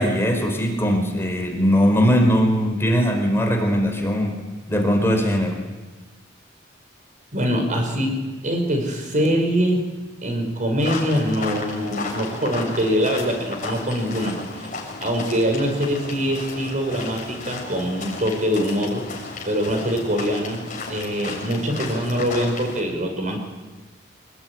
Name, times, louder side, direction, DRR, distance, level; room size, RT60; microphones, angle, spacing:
voice 1, 0.0-4.4 4.7-5.6, equal, 15° left, 2 dB, 5.1 m, -20 dB
voice 2, 7.3-9.8 10.2-14.4 15.0-19.0 19.5-23.4, equal, 45° right, 5 dB, 5.5 m, -23 dB
sound 1, 10.8-22.8, left 3 dB, 45° left, 6.8 m, -34 dB
26.5 x 21.0 x 9.7 m, 1.3 s
head